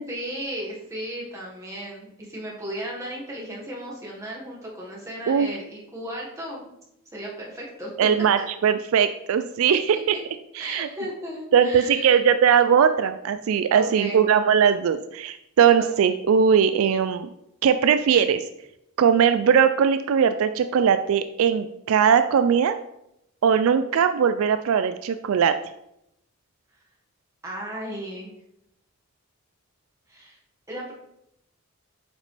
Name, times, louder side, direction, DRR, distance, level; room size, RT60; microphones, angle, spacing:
voice 1, 0.1-6.6 7.1-8.1 8.4-8.5 9.7-10.0 10.6-12.2 13.7-14.2 15.8-15.9 27.4-28.3 30.1-30.4 30.7-30.9, right 1 dB, 15° right, -3 dB, 1.5 m, -35 dB
voice 2, 8.0-10.1 10.6-10.9 11.5-17.3 17.6-18.4 19.0-22.8 23.4-25.5, right 7 dB, 70° right, 10 dB, 0.3 m, -20 dB
8.1 x 5.1 x 3.3 m, 0.82 s
head